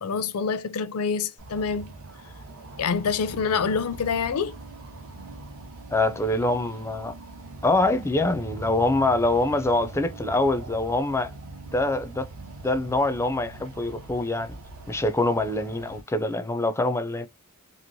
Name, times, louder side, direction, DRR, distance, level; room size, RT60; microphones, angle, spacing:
voice 1, 0.0-1.9 2.8-4.6, left 5 dB, 80° left, 0.5 m, -26 dB
sound 1, 1.4-16.0, right 3 dB, 65° right, 1.0 m, -42 dB
voice 2, 5.9-7.1 7.6-11.3 11.7-12.3 12.6-14.5 14.9-17.3, left 2 dB, 10° left, 0.4 m, -24 dB
3.0 x 2.8 x 2.6 m
head